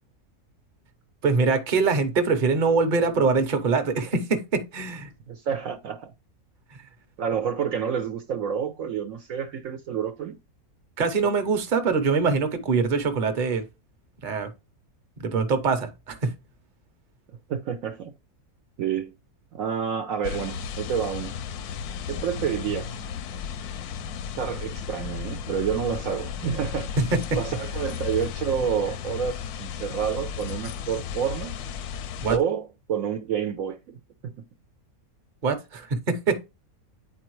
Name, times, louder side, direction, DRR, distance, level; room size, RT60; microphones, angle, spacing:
voice 1, 1.2-5.1 11.0-13.6 14.2-14.5 15.2-16.3 32.2-32.4 35.4-36.4, right 4 dB, 40° right, 0.9 m, -23 dB
voice 2, 5.3-6.1 7.2-10.4 17.5-18.1 18.8-19.1 19.5-21.3 22.1-23.0 24.4-27.0 27.4-31.6 32.3-34.0 34.2-34.3, right 8 dB, 70° right, 1.0 m, -29 dB
sound 1, 20.2-32.4, left 7 dB, 80° left, 1.1 m, -34 dB
9.2 x 4.2 x 3.1 m
omnidirectional pair, 1.6 m